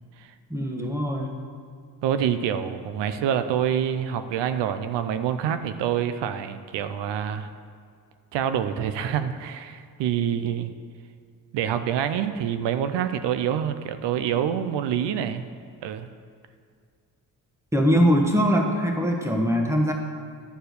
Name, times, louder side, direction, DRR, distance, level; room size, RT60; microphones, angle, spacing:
voice 1, 0.5-1.3 17.7-19.9, equal, 5° right, 1 dB, 1.4 m, -22 dB
voice 2, 2.0-7.5 8.3-10.7 11.5-15.4 15.8-16.1, right 9 dB, 90° right, 10 dB, 0.6 m, -26 dB
11.5 x 4.5 x 6.6 m, 2.2 s
cardioid pair, 80°, 41 cm